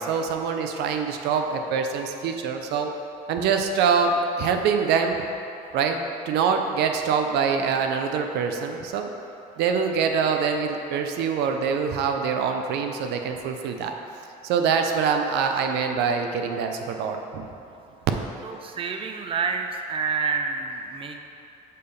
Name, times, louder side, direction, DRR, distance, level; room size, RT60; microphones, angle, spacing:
voice 1, 0.0-2.9 3.3-5.2 5.7-6.0 6.3-9.1 9.6-13.9 14.4-17.5, right 6 dB, 80° right, 4 dB, 0.5 m, -24 dB
voice 2, 18.4-21.2, right 5 dB, 30° right, 4 dB, 0.5 m, -28 dB
6.6 x 3.4 x 5.3 m, 2.8 s
cardioid pair, 110°, 17 cm